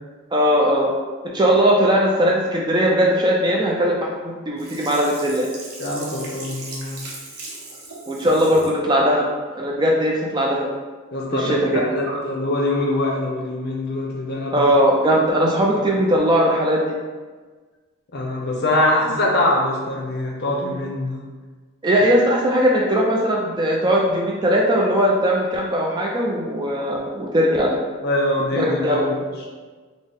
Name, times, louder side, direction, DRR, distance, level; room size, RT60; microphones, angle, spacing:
voice 1, 0.3-0.9 1.3-5.5 8.1-9.3 9.5-10.7 11.3-11.8 12.1-12.2 14.5-16.8 21.8-27.7 28.5-29.1, equal, 20° right, -2 dB, 0.3 m, -19 dB
Sink (filling or washing), 4.6-8.8 9.2-9.3, right 2 dB, 85° right, 0.8 m, -38 dB
voice 2, 5.8-7.0 11.1-14.6 18.1-21.2 28.0-29.3, left 1 dB, 50° left, -2 dB, 0.6 m, -23 dB
4.0 x 2.0 x 3.5 m, 1.4 s
head